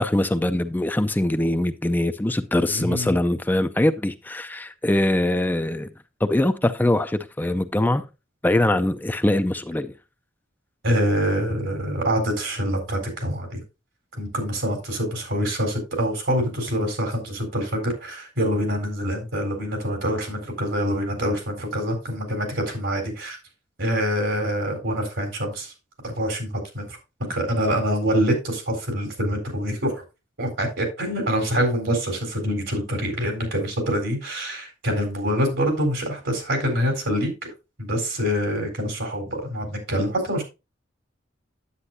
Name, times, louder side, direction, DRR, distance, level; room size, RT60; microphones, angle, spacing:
voice 1, 0.0-5.9 6.2-8.0 8.4-9.9, left 1 dB, 10° left, 0.4 m, -22 dB
voice 2, 2.7-3.2 10.8-13.6 14.2-23.4 23.8-25.7 26.0-30.0 30.4-37.5 37.8-40.4, equal, 85° right, 4.1 m, -25 dB
9.9 x 8.4 x 2.7 m
head